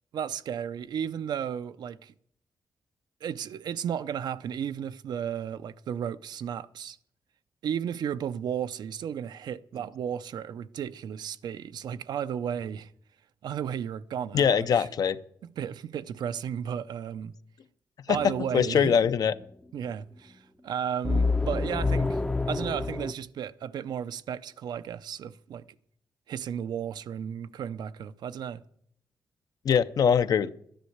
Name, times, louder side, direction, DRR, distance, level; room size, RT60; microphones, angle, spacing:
voice 1, 0.1-2.1 3.2-7.0 7.6-12.9 13.4-14.9 15.4-17.3 18.1-19.0 19.7-22.2 22.5-25.6 26.3-28.6, right 8 dB, 85° right, 0.6 m, -34 dB
voice 2, 14.3-15.2 18.1-19.3 29.6-30.5, left 7 dB, 65° left, 0.6 m, -23 dB
sound 1, 18.1-18.9 21.0-23.1, left 3 dB, 15° left, 0.5 m, -28 dB
12.5 x 10.5 x 7.9 m
wide cardioid pair, 130°, 7 cm